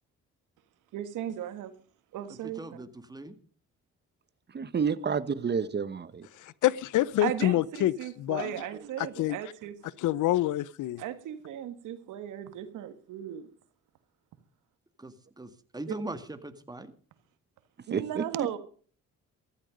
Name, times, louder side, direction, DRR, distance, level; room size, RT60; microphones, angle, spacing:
voice 1, 0.9-1.7 2.1-2.6 7.2-9.7 11.0-13.5 17.9-18.6, right 11 dB, 90° right, 1.8 m, -36 dB
voice 2, 2.3-3.4 15.0-16.9, right 2 dB, 15° right, 1.9 m, -41 dB
voice 3, 4.5-6.3 17.9-18.5, right 6 dB, 35° right, 1.1 m, -30 dB
voice 4, 6.4-8.5 9.0-9.4 10.0-11.0, left 14 dB, 80° left, 0.7 m, -27 dB
14.5 x 13.0 x 5.2 m
cardioid pair, 90°, 30 cm